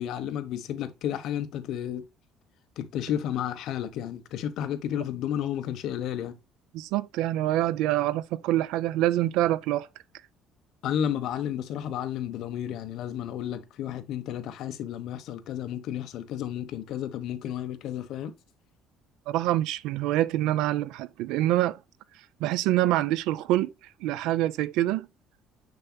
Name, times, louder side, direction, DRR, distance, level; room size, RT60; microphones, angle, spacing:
voice 1, 0.0-2.0 2.8-6.3 10.8-18.3, left 10 dB, 60° left, 1.0 m, -32 dB
voice 2, 6.7-9.9 19.3-21.8 22.4-23.7 24.0-25.1, right 14 dB, 80° right, 0.5 m, -25 dB
7.0 x 6.7 x 2.2 m
cardioid pair, 160°, 0 cm